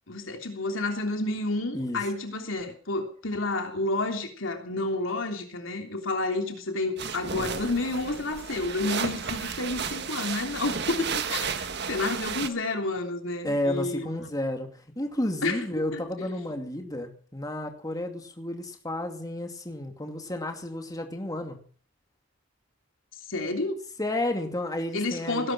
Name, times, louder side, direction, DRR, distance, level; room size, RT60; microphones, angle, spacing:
voice 1, 0.1-14.1 15.4-15.6 15.9-16.0 23.3-23.8 24.9-25.5, left 2 dB, 80° left, 3.2 m, -30 dB
sound 1, 7.0-12.5, right 6 dB, 60° right, 1.7 m, -33 dB
voice 2, 13.4-21.6 24.0-25.5, left 1 dB, 20° left, 2.5 m, -32 dB
18.5 x 11.5 x 6.2 m
head